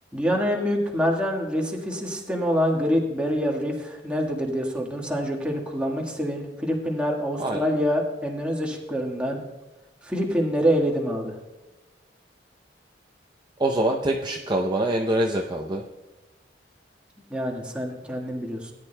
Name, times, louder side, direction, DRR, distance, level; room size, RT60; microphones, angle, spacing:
voice 1, 0.1-9.4 10.0-11.3 17.3-18.7, equal, 5° right, -1 dB, 1.6 m, -26 dB
voice 2, 13.6-15.9, right 1 dB, 25° right, 0 dB, 0.7 m, -24 dB
18.0 x 10.5 x 2.3 m, 1.1 s
head